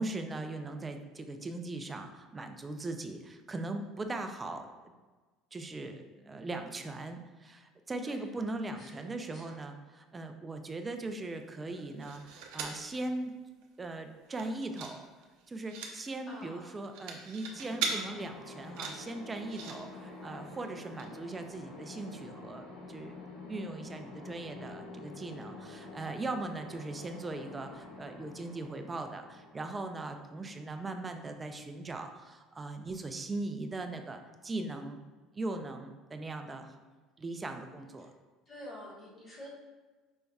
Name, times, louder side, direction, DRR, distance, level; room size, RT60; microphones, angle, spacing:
voice 1, 0.0-4.6 5.5-13.3 13.8-15.1 15.5-23.1 23.5-35.0 35.3-36.8 37.2-38.1, right 2 dB, 15° right, 6 dB, 0.3 m, -39 dB
voice 2, 8.7-9.6 16.3-16.8 36.8-36.9 38.0-38.1 38.5-39.5, equal, 25° left, -4 dB, 1.2 m, -49 dB
sound 1, 11.7-12.8 13.3-13.4 13.6-13.9 14.2-15.0 15.2-15.9 16.7-18.0 18.5-19.8 20.6-20.7 21.0-21.1, right 5 dB, 80° right, 0.6 m, -39 dB
sound 2, 17.4-31.1, left 3 dB, 80° left, 1.2 m, -48 dB
5.2 x 3.3 x 2.3 m, 1.3 s
cardioid pair, 140°, 0 cm